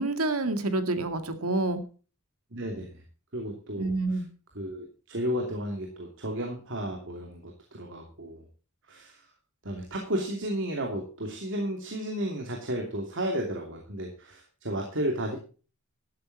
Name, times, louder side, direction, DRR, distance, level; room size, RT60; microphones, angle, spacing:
voice 1, 0.0-1.8 3.8-4.3, right 2 dB, 80° right, 8 dB, 2.1 m, -28 dB
voice 2, 2.5-2.9 3.3-4.2 4.5-8.4 8.9-9.2 9.6-15.4, right 1 dB, 55° right, 2 dB, 2.9 m, -33 dB
13.0 x 11.5 x 4.1 m, 0.36 s
head